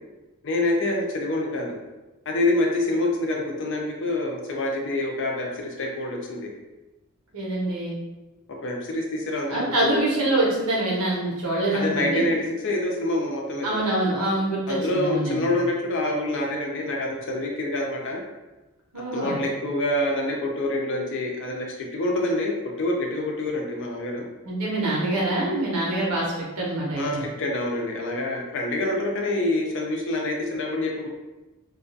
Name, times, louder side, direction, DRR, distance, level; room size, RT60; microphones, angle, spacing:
voice 1, 0.4-1.8 2.3-6.5 8.6-10.0 11.7-13.8 14.7-18.2 19.1-22.5 22.8-24.3 27.0-31.1, left 1 dB, 55° left, 0 dB, 0.5 m, -26 dB
voice 2, 7.3-8.0 9.5-12.3 13.6-15.5 18.9-19.4 24.4-27.2, right 1 dB, 80° right, -5 dB, 0.9 m, -25 dB
2.3 x 2.3 x 2.5 m, 1.1 s
head